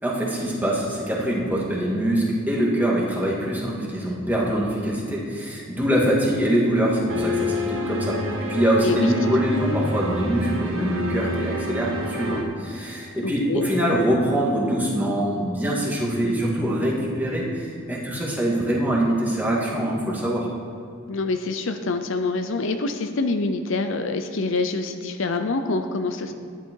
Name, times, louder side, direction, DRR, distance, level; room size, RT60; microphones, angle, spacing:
voice 1, 0.0-8.2 8.5-20.5, right 1 dB, 10° right, -4 dB, 2.2 m, -24 dB
sound 1, 7.1-12.4, left 1 dB, 70° right, 1.5 m, -28 dB
voice 2, 13.2-13.7 21.1-26.3, left 3 dB, 60° left, 7 dB, 0.7 m, -26 dB
12.0 x 11.0 x 4.7 m, 2.5 s
head